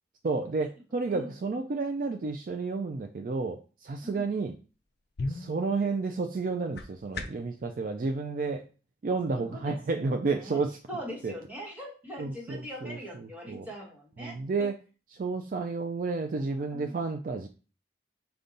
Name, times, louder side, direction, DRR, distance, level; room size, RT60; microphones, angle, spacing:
voice 1, 0.2-4.6 5.3-8.6 9.0-10.8 11.2-11.3 12.2-13.7 14.2-14.7 15.2-17.5, right 4 dB, 45° right, 4 dB, 0.3 m, -31 dB
voice 2, 1.1-1.5 4.0-4.3 9.4-10.6 10.9-14.7 16.4-17.0, equal, 10° right, -3 dB, 1.2 m, -42 dB
sound 1, 4.7-7.6, left 2 dB, 55° left, 0.5 m, -39 dB
5.2 x 2.3 x 3.8 m, 0.36 s
head